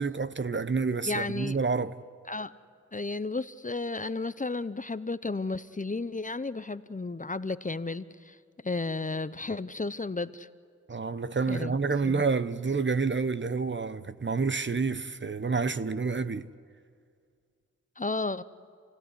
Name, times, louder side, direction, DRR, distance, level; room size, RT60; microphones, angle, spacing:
voice 1, 0.0-1.9 10.9-16.5, right 4 dB, 40° right, 0.9 m, -29 dB
voice 2, 1.1-1.6 2.3-2.5 2.9-8.4 8.6-10.5 11.5-11.8 12.0-12.2 18.0-18.4, left 3 dB, 25° left, 0.8 m, -33 dB
28.5 x 16.0 x 9.7 m
cardioid pair, 40°, 31 cm